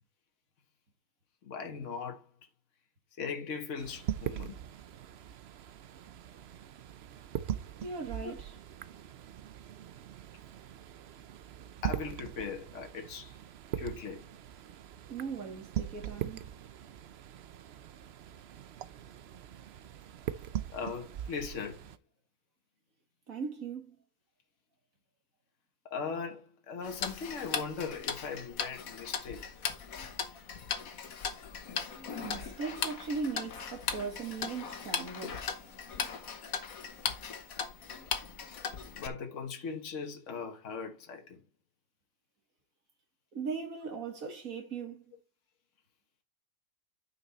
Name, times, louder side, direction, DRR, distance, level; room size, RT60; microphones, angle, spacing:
voice 1, 1.4-2.2 3.2-4.6 8.2-8.4 11.8-13.4 13.8-14.2 20.7-21.9 25.9-29.5 38.9-41.4, left 5 dB, 65° left, 1.6 m, -39 dB
sound 1, 3.8-22.0, right 10 dB, 60° right, 0.8 m, -41 dB
voice 2, 7.8-8.5 15.1-16.5 23.3-24.0 32.2-35.4 43.3-45.1, right 5 dB, 80° right, 2.2 m, -38 dB
Tick-tock, 26.8-39.1, left 6 dB, 90° left, 1.6 m, -38 dB
9.1 x 6.0 x 4.1 m
omnidirectional pair, 1.4 m